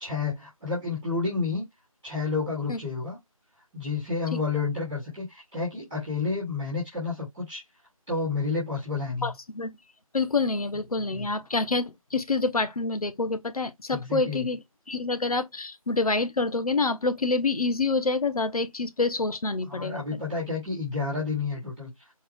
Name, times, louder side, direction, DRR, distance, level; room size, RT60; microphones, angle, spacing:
voice 1, 0.0-1.6 2.0-3.2 3.7-7.6 8.1-9.3 11.1-11.3 13.9-14.4 19.7-21.9, left 4 dB, ahead, 0.8 m, -30 dB
voice 2, 9.2-9.7 10.1-14.6 14.9-20.2, left 3 dB, 90° left, 0.9 m, -27 dB
4.6 x 2.3 x 3.4 m
figure-of-eight pair, 175°, 18 cm